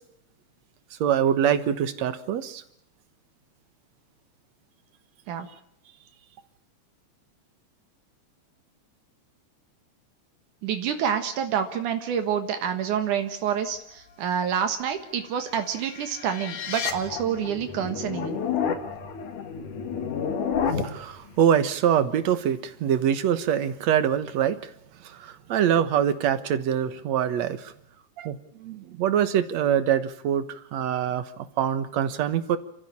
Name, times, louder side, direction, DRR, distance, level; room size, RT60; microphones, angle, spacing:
voice 1, 1.0-2.6 20.8-24.6 25.1-27.7 28.2-32.6, right 9 dB, 65° right, 12 dB, 2.4 m, -24 dB
voice 2, 10.6-18.4, right 8 dB, 85° right, 7 dB, 3.0 m, -28 dB
sound 1, 15.6-21.0, left 7 dB, 85° left, 3.4 m, -30 dB
27.5 x 14.0 x 8.6 m, 0.75 s
omnidirectional pair, 3.5 m